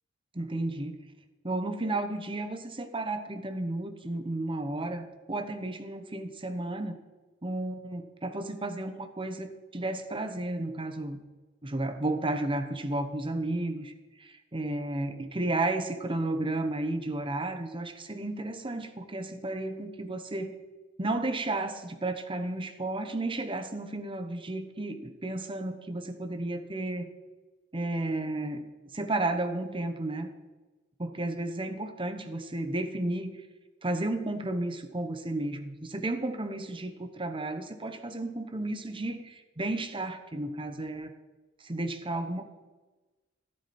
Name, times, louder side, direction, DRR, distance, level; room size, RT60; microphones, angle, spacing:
voice 1, 0.3-1.0 1.4-7.0 7.4-11.2 11.6-13.9 14.2-20.5 21.0-27.1 27.7-28.6 28.9-30.3 31.0-33.4 33.8-41.1 41.6-42.4, right 2 dB, 25° right, 8 dB, 1.0 m, -33 dB
13.0 x 11.5 x 4.3 m, 1.2 s
head